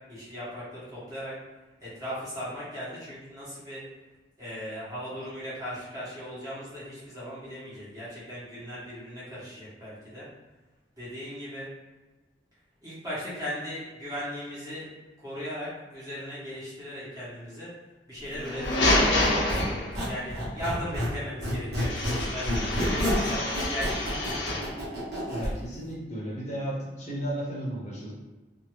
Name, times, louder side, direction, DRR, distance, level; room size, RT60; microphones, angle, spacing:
voice 1, 0.1-1.3 1.8-3.8 4.4-10.2 11.0-11.7 12.8-14.9 15.2-17.7 18.1-19.6 20.0-24.6, equal, 20° right, -9 dB, 1.3 m, -38 dB
sound 1, 18.3-20.2 21.8-24.8, left 1 dB, 90° left, 0.8 m, -28 dB
Squeak, 18.6-21.2 21.4-25.5, equal, 65° right, 1.2 m, -29 dB
voice 2, 25.3-28.1, right 1 dB, 40° left, -5 dB, 0.8 m, -34 dB
2.8 x 2.6 x 3.0 m, 1.2 s
head